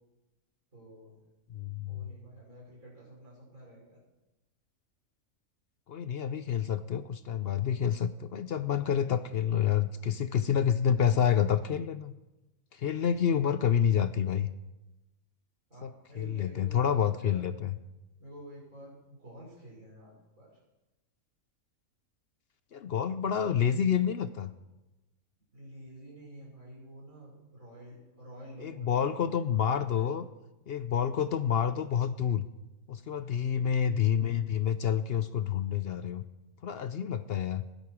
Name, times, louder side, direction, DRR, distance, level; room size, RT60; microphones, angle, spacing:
voice 1, 0.7-1.2 1.9-4.0 15.7-17.4 18.2-20.6 25.5-29.4 29.8-30.1, right 1 dB, 70° right, -5 dB, 6.5 m, -50 dB
voice 2, 1.5-2.1 5.9-12.1 12.7-14.5 15.8-17.8 22.7-24.5 28.6-30.3 30.7-32.5 32.9-36.2 36.6-37.7, left 8 dB, 60° left, 12 dB, 0.7 m, -28 dB
16.0 x 12.0 x 4.8 m, 1.0 s
omnidirectional pair, 1.5 m